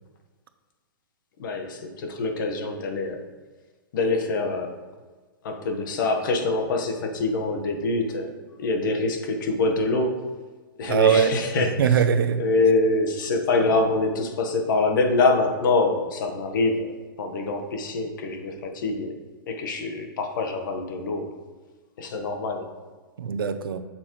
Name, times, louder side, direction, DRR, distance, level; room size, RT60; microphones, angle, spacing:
voice 1, 1.4-3.2 3.9-4.7 5.4-8.3 8.6-10.2 10.8-12.0 12.4-19.2 19.5-21.3 22.0-22.7, left 3 dB, 65° left, 4 dB, 1.4 m, -25 dB
voice 2, 10.9-12.5 13.6-13.8 23.2-23.8, right 7 dB, 90° right, 9 dB, 0.7 m, -22 dB
8.5 x 7.4 x 3.2 m, 1.4 s
hypercardioid pair, 140°, 12 cm